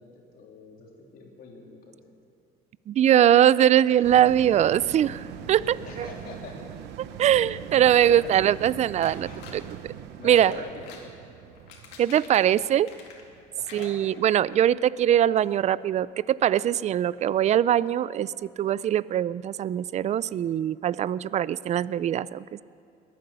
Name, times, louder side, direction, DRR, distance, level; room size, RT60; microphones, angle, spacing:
voice 1, 0.0-2.1 3.7-3.9 5.8-6.6 7.2-7.6 7.9-8.2 9.2-9.5 10.2-11.2 13.6-13.9, left 4 dB, 60° left, -1 dB, 3.3 m, -44 dB
voice 2, 2.9-6.1 7.2-9.9 10.2-10.6 12.0-12.9 13.7-22.6, right 10 dB, 40° right, 20 dB, 0.4 m, -22 dB
sound 1, 4.0-14.7 15.1-15.2, right 9 dB, 90° right, 0.9 m, -42 dB
sound 2, 9.0-9.6 10.2-11.1 11.5-13.4 13.6-14.6 14.9-15.0 15.4-15.5, left 5 dB, 90° left, 2.3 m, -47 dB
21.5 x 9.5 x 6.8 m, 2.4 s
cardioid pair, 110°, 17 cm